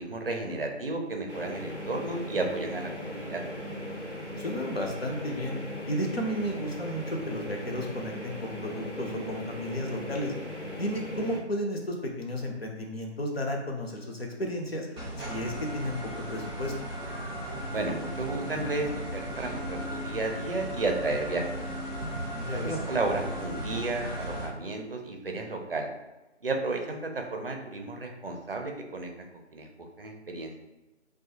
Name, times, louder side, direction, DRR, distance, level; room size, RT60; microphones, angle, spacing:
voice 1, 0.0-3.4 17.7-21.6 22.5-25.9 26.4-30.6, right 2 dB, 55° right, 3 dB, 0.5 m, -33 dB
sound 1, 1.3-11.4, left 1 dB, 85° left, 1.1 m, -38 dB
voice 2, 4.4-5.6 5.9-10.3 10.8-14.9 15.2-16.7 22.3-22.8, equal, 55° left, 2 dB, 0.6 m, -33 dB
sound 2, 15.0-24.5, right 1 dB, ahead, 0.6 m, -36 dB
2.5 x 2.2 x 2.8 m, 1.1 s
figure-of-eight pair, 170°, 35 cm